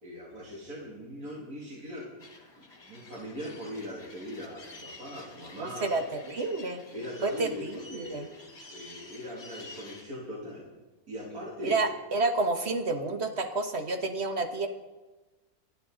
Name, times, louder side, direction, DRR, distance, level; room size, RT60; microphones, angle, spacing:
voice 1, 0.0-2.1 2.6-5.9 6.9-8.3 8.7-10.7 11.1-11.8, left 1 dB, 70° right, -5 dB, 3.2 m, -40 dB
sound 1, 2.2-10.0, left 3 dB, 45° left, 2.2 m, -50 dB
voice 2, 5.6-6.8 7.2-8.2 11.6-14.7, right 3 dB, 45° right, 5 dB, 1.4 m, -30 dB
28.5 x 9.8 x 3.9 m, 1.2 s
omnidirectional pair, 1.6 m